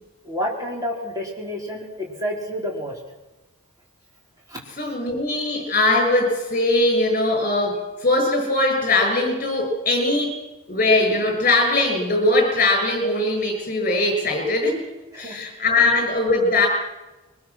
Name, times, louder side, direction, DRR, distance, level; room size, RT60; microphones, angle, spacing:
voice 1, 0.2-3.0 4.5-4.6 15.1-15.4, equal, 15° right, -2 dB, 4.8 m, -29 dB
voice 2, 4.8-10.4 10.7-14.9 15.1-16.7, left 2 dB, 35° left, 2 dB, 7.2 m, -20 dB
23.0 x 21.0 x 6.2 m, 1.1 s
head